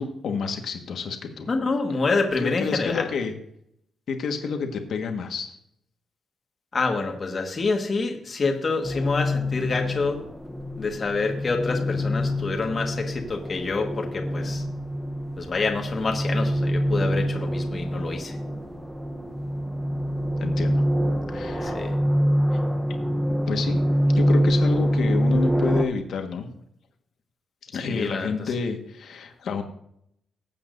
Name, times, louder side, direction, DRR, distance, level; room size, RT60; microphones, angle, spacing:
voice 1, 0.0-1.5 2.4-3.3 4.1-5.6 20.4-20.8 21.3-21.8 22.5-22.6 23.4-23.8 24.1-26.4 27.7-29.6, left 5 dB, 65° left, 5 dB, 1.5 m, -29 dB
voice 2, 1.5-3.1 6.7-10.2 10.8-14.6 15.4-18.4 21.6-21.9 27.7-28.5, left 3 dB, 35° left, 3 dB, 1.6 m, -27 dB
sound 1, 8.8-25.8, equal, 5° right, 0.9 m, -25 dB
19.5 x 8.6 x 2.6 m, 0.73 s
wide cardioid pair, 150°, 0 cm